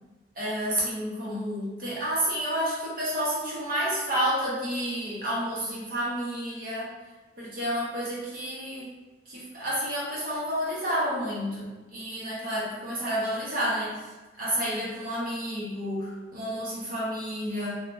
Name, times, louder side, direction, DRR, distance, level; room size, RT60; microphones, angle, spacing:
voice 1, 0.3-6.9 7.4-8.9 9.3-14.1 14.4-17.8, equal, 55° right, -7 dB, 1.1 m, -30 dB
3.2 x 2.5 x 2.6 m, 1.2 s
head